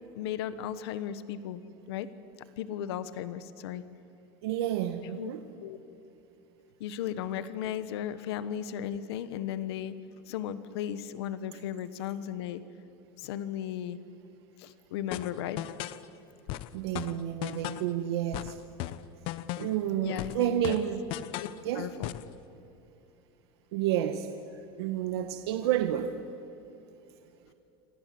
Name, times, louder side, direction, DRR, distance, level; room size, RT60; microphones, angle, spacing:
voice 1, 0.1-1.6 1.9-2.1 2.6-3.8 5.2-5.3 5.6-5.8 6.8-9.9 10.3-12.6 13.2-14.0 14.6-15.6 20.0-20.8 21.4-21.5 21.7-22.1, left 10 dB, 85° left, 13 dB, 1.3 m, -35 dB
voice 2, 4.4-5.5 16.7-18.6 19.6-21.1 21.6-21.9 23.7-26.1, right 11 dB, 90° right, 7 dB, 1.4 m, -30 dB
sound 1, 15.1-16.0 16.5-17.9 18.3-19.8 20.2-21.6 22.0-22.3, left 15 dB, 40° left, 0.8 m, -37 dB
27.5 x 25.5 x 7.8 m, 2.8 s
cardioid pair, 175°, 13 cm